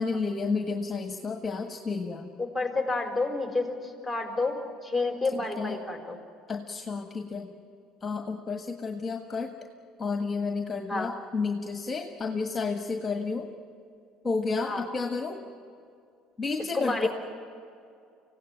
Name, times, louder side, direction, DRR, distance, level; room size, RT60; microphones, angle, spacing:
voice 1, 0.0-2.3 5.3-5.8 6.5-7.5 8.0-9.5 10.0-13.5 14.2-15.4 16.4-17.1, left 4 dB, 25° left, 5 dB, 1.6 m, -31 dB
voice 2, 2.4-6.2 10.9-11.1 14.7-14.8 16.7-17.1, left 3 dB, ahead, 3 dB, 4.4 m, -29 dB
26.0 x 17.0 x 9.2 m, 2.4 s
hypercardioid pair, 65°, 0 cm